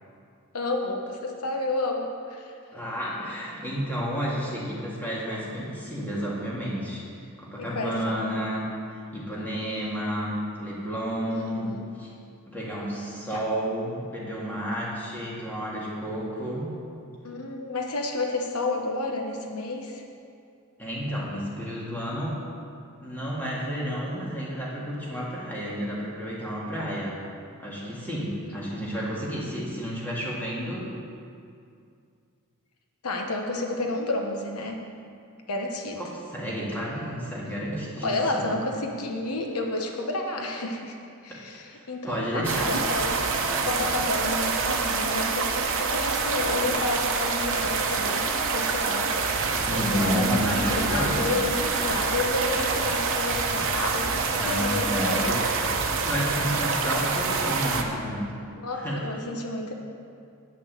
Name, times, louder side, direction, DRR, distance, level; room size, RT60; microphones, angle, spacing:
voice 1, 0.5-2.5 7.6-8.2 9.7-9.9 11.3-11.8 13.3-13.5 17.2-20.0 33.0-34.8 35.5-36.0 38.0-41.0 41.2-43.2 43.6-49.1 49.9-55.4 58.5-59.7, left 2 dB, 85° left, 2 dB, 1.1 m, -31 dB
voice 2, 2.7-7.0 7.4-12.1 12.5-16.7 20.8-22.4 23.0-27.2 27.6-30.9 36.0-38.5 41.3-42.9 49.7-51.4 53.5-53.7 54.3-55.4 56.0-58.3 58.7-59.2, equal, 10° left, -6 dB, 2.1 m, -31 dB
sound 1, 42.4-57.8, right 4 dB, 60° right, 0.9 m, -26 dB
9.7 x 6.4 x 7.5 m, 2.4 s
head